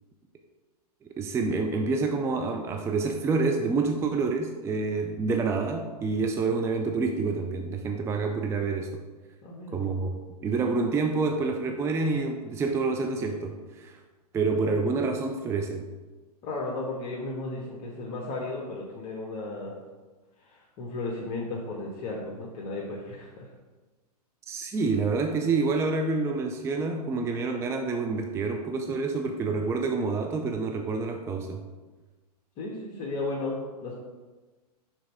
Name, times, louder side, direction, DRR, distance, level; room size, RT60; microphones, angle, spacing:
voice 1, 1.0-8.9 9.7-10.1 10.4-14.0 14.3-15.9 24.5-31.6, right 4 dB, 15° right, 4 dB, 0.4 m, -28 dB
voice 2, 9.4-9.8 16.4-19.7 20.4-23.5 32.6-33.9, left 2 dB, 40° left, -4 dB, 1.3 m, -34 dB
6.4 x 4.0 x 4.8 m, 1.3 s
hypercardioid pair, 120°, 21 cm